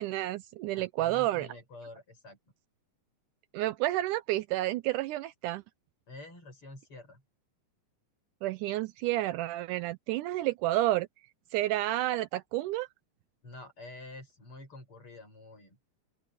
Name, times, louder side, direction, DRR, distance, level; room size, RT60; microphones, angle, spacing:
voice 1, 0.0-1.5 3.5-5.6 8.4-11.1 11.5-12.9, right 16 dB, 80° right, 2.0 m, -30 dB
voice 2, 0.7-2.4 6.1-7.2 13.4-15.8, left 2 dB, 40° left, 8.3 m, -48 dB
open air
omnidirectional pair, 3.8 m